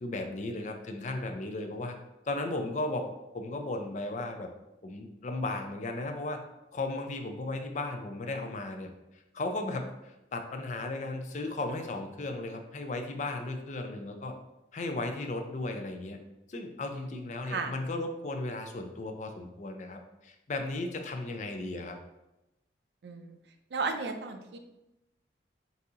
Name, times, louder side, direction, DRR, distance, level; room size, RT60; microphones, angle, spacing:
voice 1, 0.0-2.0 2.3-4.5 4.8-6.4 6.7-8.9 9.3-14.3 14.7-16.2 16.5-22.0, left 2 dB, 40° left, 5 dB, 0.4 m, -35 dB
voice 2, 23.0-23.4 23.7-24.6, right 4 dB, 70° right, 7 dB, 0.4 m, -34 dB
4.0 x 2.8 x 3.6 m, 0.93 s
head